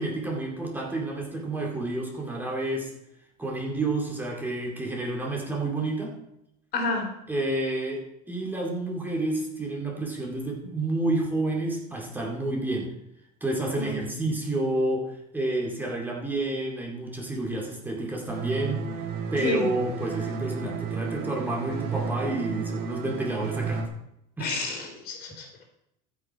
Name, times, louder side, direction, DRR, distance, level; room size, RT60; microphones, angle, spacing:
voice 1, 0.0-2.9 3.4-6.1 7.3-12.9 13.4-18.8 19.3-23.8 24.4-24.5, right 2 dB, 10° right, -1 dB, 2.2 m, -29 dB
voice 2, 6.7-7.1 13.8-14.1 19.4-19.7 24.4-25.6, left 3 dB, 50° left, 2 dB, 2.9 m, -30 dB
sound 1, 18.3-23.9, right 5 dB, 50° right, 1.4 m, -33 dB
14.5 x 5.9 x 4.7 m, 0.81 s
supercardioid pair, 130°, 21 cm